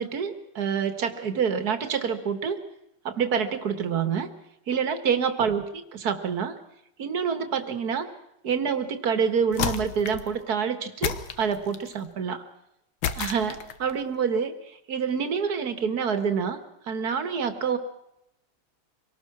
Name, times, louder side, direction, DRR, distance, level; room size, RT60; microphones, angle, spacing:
voice 1, 0.0-2.6 3.0-4.3 4.7-5.6 6.0-6.5 7.0-8.1 8.4-12.4 13.2-16.6 16.8-17.8, right 6 dB, 50° right, 9 dB, 2.2 m, -27 dB
sound 1, 9.5-10.3 11.0-11.9 13.0-13.9, left 8 dB, 75° left, 2.0 m, -31 dB
24.5 x 19.0 x 6.2 m, 0.81 s
omnidirectional pair, 2.2 m